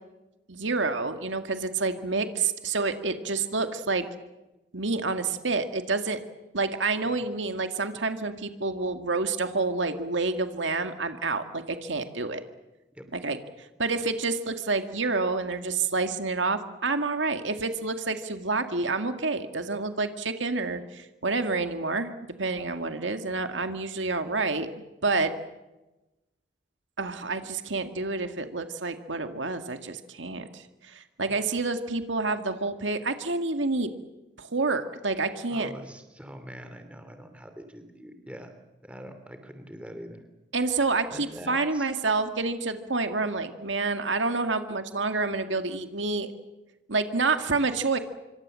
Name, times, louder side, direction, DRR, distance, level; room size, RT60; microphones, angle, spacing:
voice 1, 0.5-4.0 4.7-6.2 6.5-12.4 13.1-13.4 13.8-22.1 22.4-24.7 25.0-25.3 27.0-33.9 34.4-35.7 40.5-46.3 46.9-48.0, right 3 dB, 90° right, 7 dB, 2.1 m, -28 dB
voice 2, 35.5-38.5 38.8-40.2 41.1-41.9, equal, 5° right, 7 dB, 2.9 m, -43 dB
26.0 x 25.0 x 7.7 m, 1.0 s
head